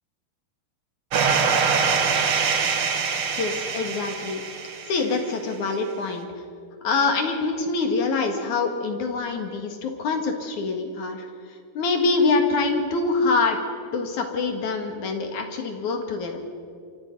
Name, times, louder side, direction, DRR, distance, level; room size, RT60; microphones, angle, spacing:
sound 1, 1.1-5.1, right 5 dB, 50° right, 1.8 m, -24 dB
voice 1, 3.3-4.4 4.9-6.3 6.8-11.2 11.7-13.6 13.9-16.4, left 3 dB, 55° left, 4 dB, 3.1 m, -25 dB
27.0 x 25.0 x 5.4 m, 2.3 s
omnidirectional pair, 4.3 m